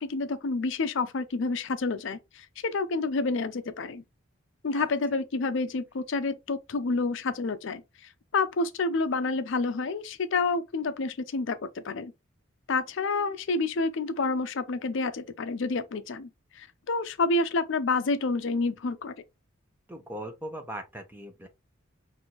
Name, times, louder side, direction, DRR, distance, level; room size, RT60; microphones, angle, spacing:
voice 1, 0.0-4.0 4.6-12.1 12.7-19.1, left 3 dB, 60° left, 0.5 m, -29 dB
voice 2, 19.9-21.5, right 1 dB, 10° right, 0.8 m, -39 dB
6.0 x 2.7 x 2.9 m
head